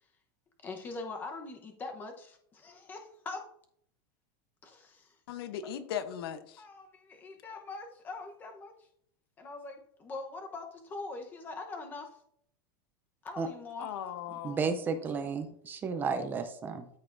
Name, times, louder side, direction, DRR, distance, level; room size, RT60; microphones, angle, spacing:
voice 1, 0.6-3.4 4.6-5.2 6.6-8.9 9.4-12.2 13.2-13.9, left 3 dB, 15° left, 0.9 m, -43 dB
voice 2, 5.3-6.6 13.8-14.8, left 9 dB, 85° left, 0.9 m, -38 dB
voice 3, 14.4-16.9, right 5 dB, 15° right, 0.5 m, -33 dB
13.5 x 5.7 x 2.6 m
supercardioid pair, 175°, 12 cm